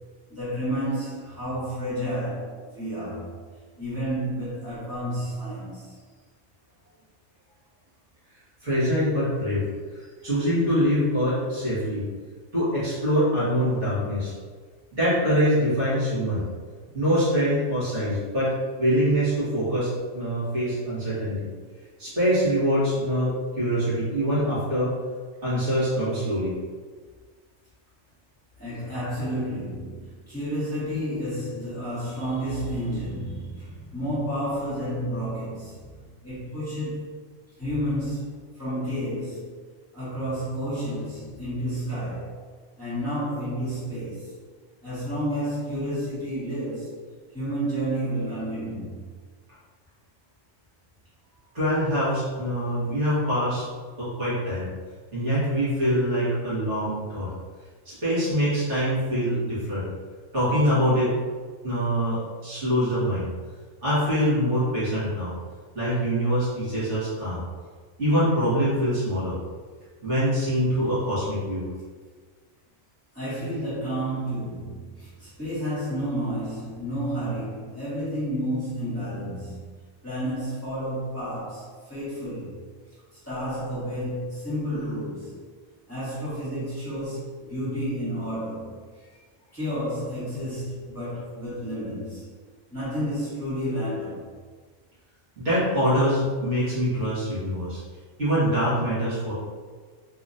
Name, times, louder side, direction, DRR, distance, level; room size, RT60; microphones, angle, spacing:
voice 1, 0.3-3.3 3.8-5.9 28.6-35.9 36.2-37.1 37.6-39.5 39.9-42.3 42.8-44.3 44.8-46.9 47.3-49.0 73.1-79.7 80.0-82.6 83.1-85.3 85.9-89.0 89.5-92.3 92.7-94.3, equal, 10° left, -13 dB, 1.5 m, -31 dB
voice 2, 8.6-9.7 9.9-12.1 12.5-14.3 14.9-16.4 16.9-21.5 22.0-25.0 25.4-26.6 51.5-53.7 54.0-54.7 55.1-57.3 57.9-59.9 60.3-61.1 61.6-63.3 63.8-65.3 65.7-67.4 68.0-69.3 70.0-71.7 95.4-97.8 98.2-99.3, equal, 60° right, -11 dB, 1.9 m, -24 dB
3.9 x 2.8 x 2.5 m, 1.5 s
omnidirectional pair, 1.4 m